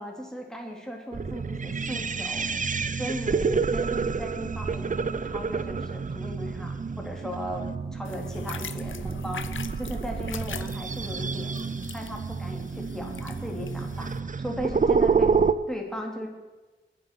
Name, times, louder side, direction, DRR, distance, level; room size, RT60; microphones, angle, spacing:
voice 1, 0.0-2.5 3.0-9.5 9.8-11.6 11.9-14.1 14.4-15.3 15.7-16.3, equal, 5° left, 0 dB, 3.2 m, -37 dB
sound 1, 1.1-15.5, right 5 dB, 40° right, 0.6 m, -29 dB
sound 2, 8.0-14.2, left 7 dB, 75° left, 0.7 m, -43 dB
22.0 x 7.4 x 6.1 m, 1.2 s
wide cardioid pair, 100°, 20 cm